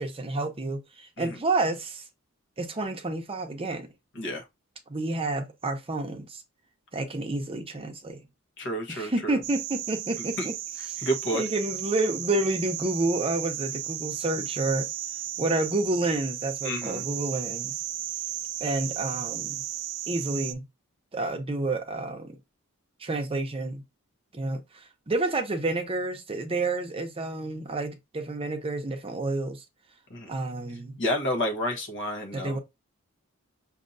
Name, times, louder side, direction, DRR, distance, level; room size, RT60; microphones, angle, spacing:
voice 1, 0.0-2.0 2.6-3.9 4.9-6.4 6.9-8.2 8.9-10.6 10.9-11.0 11.3-14.9 15.4-17.8 18.6-19.6 20.1-20.6 21.1-22.4 23.0-23.8 24.3-29.6 30.3-31.0 32.3-32.6, right 2 dB, 25° right, 0.7 m, -29 dB
voice 2, 8.6-9.4 10.4-10.5 11.0-11.4 16.6-17.1 30.1-30.3 31.0-32.6, equal, 60° left, 1.3 m, -30 dB
sound 1, 9.4-20.5, right 13 dB, 60° right, 0.5 m, -35 dB
6.4 x 2.7 x 2.6 m
head